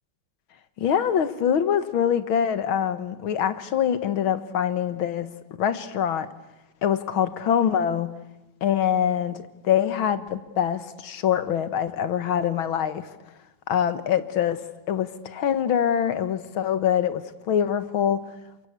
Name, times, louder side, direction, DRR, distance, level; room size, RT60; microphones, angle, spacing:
voice 1, 0.8-5.3 5.6-6.3 6.8-8.1 8.6-13.1 13.7-18.2, left 9 dB, 90° left, 2.1 m, -24 dB
29.0 x 24.5 x 8.2 m
omnidirectional pair, 2.2 m